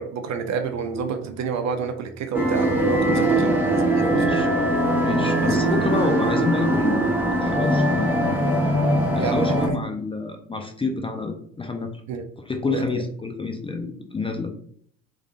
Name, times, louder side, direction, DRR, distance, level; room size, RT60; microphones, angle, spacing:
voice 1, 0.0-3.5 4.0-4.5 5.4-5.6 9.1-9.5 12.1-12.2 12.7-13.0, right 6 dB, 45° right, 7 dB, 0.7 m, -29 dB
sound 1, 2.3-9.7, right 1 dB, 5° right, 1.0 m, -21 dB
voice 2, 3.0-3.5 4.1-4.5 5.0-7.1 7.4-8.4 9.2-11.9 12.5-14.5, left 3 dB, 15° left, 3 dB, 0.5 m, -28 dB
3.7 x 3.2 x 2.4 m, 0.63 s
hypercardioid pair, 65°, 39 cm